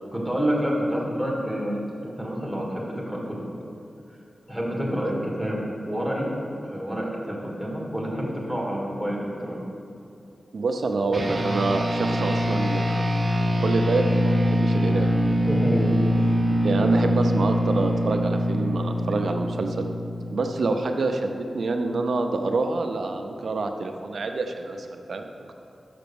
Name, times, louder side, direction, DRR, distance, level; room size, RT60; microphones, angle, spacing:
voice 1, 0.1-3.3 4.5-5.6 5.8-6.3 6.6-9.6 15.5-16.3, equal, 5° left, -4 dB, 1.6 m, -28 dB
voice 2, 10.5-12.9 13.6-15.1 16.6-19.9 20.3-25.5, right 3 dB, 70° right, 5 dB, 0.6 m, -26 dB
sound 1, 11.1-20.8, equal, 35° right, 0.8 m, -24 dB
6.0 x 5.9 x 6.9 m, 2.6 s
wide cardioid pair, 145°, 0 cm